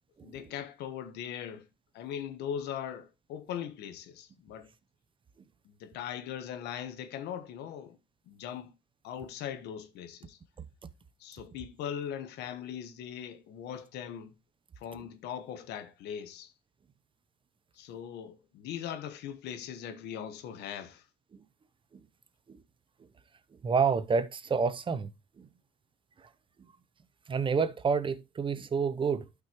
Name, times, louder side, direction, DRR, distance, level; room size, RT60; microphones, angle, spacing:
voice 1, 0.2-1.7 1.9-4.7 5.8-8.0 8.3-8.7 9.0-10.4 11.2-14.3 14.8-16.5 17.7-21.0, left 9 dB, 80° left, 1.3 m, -40 dB
voice 2, 23.6-25.1 25.4-25.5 27.3-29.2, right 5 dB, 30° right, 0.8 m, -28 dB
12.0 x 5.8 x 3.0 m
cardioid pair, 110°, 17 cm